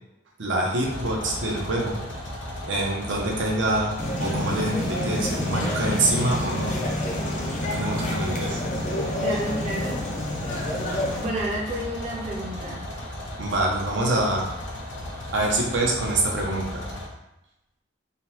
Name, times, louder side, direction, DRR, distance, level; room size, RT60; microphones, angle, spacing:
voice 1, 0.4-2.0 2.6-6.7 7.6-8.6 13.4-14.5 15.3-16.9, right 2 dB, 75° right, -1 dB, 0.6 m, -25 dB
sound 1, 0.8-17.1, left 1 dB, 75° left, 0.7 m, -35 dB
sound 2, 4.0-11.2, left 1 dB, 40° left, 0.5 m, -28 dB
voice 2, 9.2-10.0 10.6-10.8 11.2-12.8, right 1 dB, 35° right, -4 dB, 0.5 m, -31 dB
3.6 x 2.2 x 2.8 m, 0.93 s
head